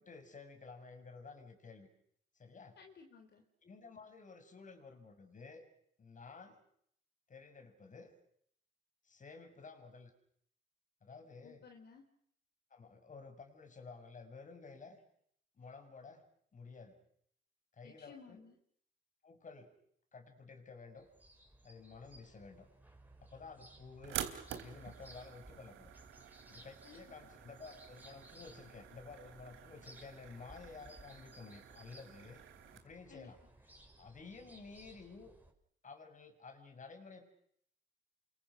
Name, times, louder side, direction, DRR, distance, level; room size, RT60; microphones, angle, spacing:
voice 1, 0.0-1.9 2.4-2.8 3.6-5.6 6.0-6.6 7.3-8.1 9.1-10.1 11.0-11.6 12.7-15.0 15.6-16.3 16.5-17.0 17.8-18.4 19.2-19.7 20.1-21.1 21.6-22.7 23.2-25.9 26.5-32.4 32.7-33.4 34.0-35.3 35.8-37.3, left 4 dB, 40° left, 7 dB, 6.6 m, -53 dB
voice 2, 2.8-3.4 11.4-12.1 17.8-18.6 26.8-27.1 33.1-33.3, left 5 dB, 60° left, 5 dB, 3.7 m, -57 dB
sound 1, 21.0-35.5, right 1 dB, 10° right, 5.9 m, -60 dB
sound 2, 24.0-32.8, right 10 dB, 85° right, 3.6 m, -49 dB
29.5 x 25.0 x 6.3 m, 0.68 s
cardioid pair, 90°, 20 cm